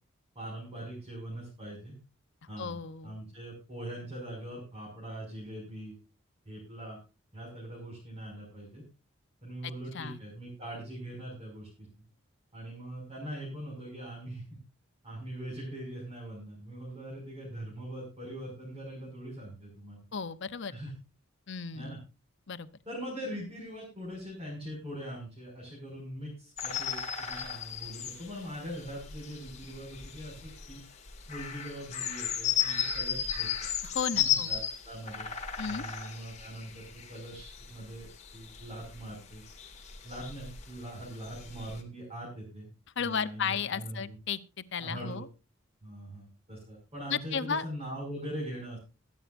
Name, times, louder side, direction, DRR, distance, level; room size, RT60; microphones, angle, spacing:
voice 1, 0.3-1.9 2.5-6.0 6.4-7.0 7.3-8.8 9.4-11.9 12.5-14.4 15.0-20.0 20.7-20.9 21.7-22.0 22.9-30.8 31.3-33.5 34.1-34.6 34.8-35.3 35.6-38.1 38.3-39.4 40.0-42.7 43.0-44.2 44.8-45.2 45.8-48.8, right 1 dB, 30° right, -4 dB, 6.0 m, -42 dB
voice 2, 2.6-3.1 9.6-10.2 20.1-20.7 21.5-22.0 22.5-22.7 33.8-34.5 35.6-35.8 43.0-45.3 47.1-47.6, left 6 dB, 60° left, 12 dB, 0.8 m, -34 dB
sound 1, 26.6-41.8, left 9 dB, 35° left, 2.1 m, -35 dB
22.5 x 9.1 x 2.6 m, 0.31 s
head